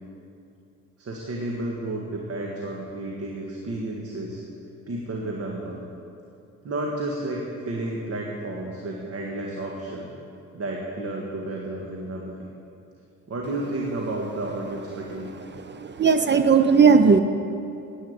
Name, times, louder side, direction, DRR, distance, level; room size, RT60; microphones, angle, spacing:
voice 1, 1.0-4.4 4.9-5.8 6.6-10.1 10.5-12.5 13.3-15.3, right 2 dB, 50° right, -1 dB, 1.8 m, -31 dB
voice 2, 15.7-17.2, right 5 dB, 35° right, 9 dB, 0.6 m, -17 dB
10.0 x 9.1 x 8.8 m, 2.7 s
cardioid pair, 90°, 30 cm